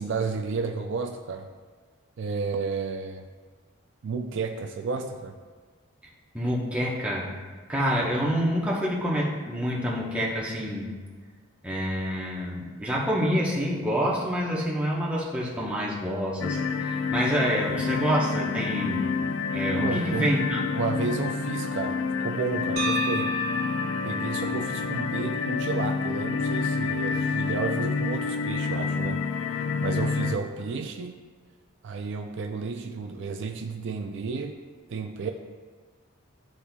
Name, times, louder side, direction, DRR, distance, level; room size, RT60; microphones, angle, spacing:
voice 1, 0.0-1.5 2.2-3.3 4.0-5.4 19.8-20.3 20.7-23.4 24.0-29.2 29.8-31.2 31.8-34.6 34.9-35.3, right 4 dB, 55° right, 5 dB, 0.4 m, -32 dB
voice 2, 6.3-7.3 7.7-10.9 11.6-19.1 19.5-20.7, equal, 5° right, -5 dB, 1.0 m, -27 dB
sound 1, 16.4-30.4, left 5 dB, 60° left, 0.3 m, -28 dB
sound 2, 22.8-26.8, right 3 dB, 80° right, 1.0 m, -35 dB
12.0 x 4.1 x 2.3 m, 1.5 s
head